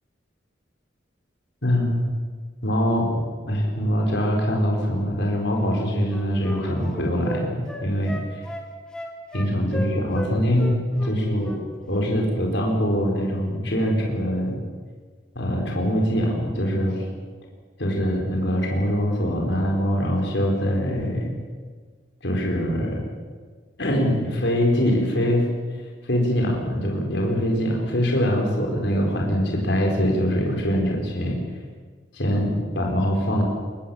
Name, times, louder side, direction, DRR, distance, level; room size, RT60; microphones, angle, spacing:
voice 1, 1.6-2.1 2.6-3.1 3.4-8.4 9.3-11.6 11.9-14.6 15.3-17.0 17.8-21.3 22.2-23.0 23.8-25.5 26.0-31.4 32.1-33.4, equal, 65° left, 0 dB, 4.7 m, -23 dB
Wind instrument woodwind instrument, 5.6-10.3 10.6-11.6 11.9-12.1, equal, 5° left, 2.4 m, -35 dB
24.0 x 19.5 x 7.2 m, 1.5 s
head